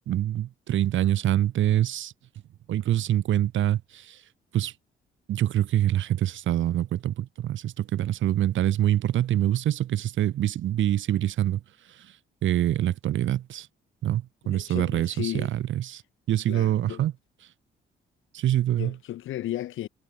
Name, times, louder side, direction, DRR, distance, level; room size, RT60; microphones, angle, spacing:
voice 1, 0.1-2.1 2.7-4.2 4.5-4.7 5.3-11.6 11.9-12.1 12.4-13.7 14.0-16.0 16.3-17.1 18.3-19.0, right 12 dB, 75° right, 2.8 m, -25 dB
voice 2, 14.4-15.5 16.5-17.0 18.7-19.9, left 13 dB, 80° left, 5.6 m, -34 dB
cardioid pair, 90°, 20 cm